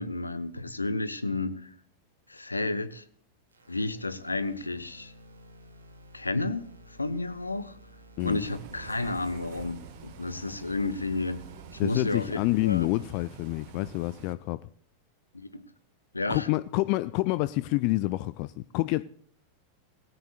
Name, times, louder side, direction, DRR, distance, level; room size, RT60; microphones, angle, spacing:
voice 1, 0.0-1.7 2.3-3.0 3.7-5.1 6.1-6.7 7.0-7.7 8.2-11.5 11.7-12.9 15.3-15.6 16.1-16.5, left 2 dB, 80° left, 1.0 m, -31 dB
sound 1, 3.5-13.5, equal, 80° right, 2.9 m, -53 dB
Bus, 8.2-14.3, right 7 dB, 45° right, 1.6 m, -47 dB
voice 2, 11.8-14.6 16.3-19.0, left 20 dB, 45° left, 0.4 m, -28 dB
18.5 x 16.5 x 2.4 m
figure-of-eight pair, 90°, 0 cm